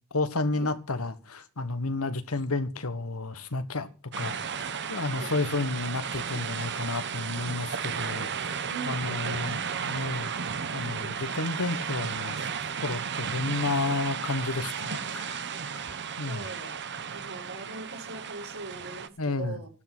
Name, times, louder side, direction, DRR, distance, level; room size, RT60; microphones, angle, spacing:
voice 1, 0.1-3.9 4.2-10.3 10.7-12.4 12.8-15.5 15.7-16.4 19.2-19.6, left 3 dB, 70° left, 1.5 m, -31 dB
sound 1, 4.1-19.1, right 6 dB, 50° right, 1.1 m, -34 dB
voice 2, 8.6-10.1 10.9-11.4 15.9-16.8 17.1-19.7, right 3 dB, 80° right, 6.6 m, -42 dB
14.5 x 12.0 x 6.1 m
head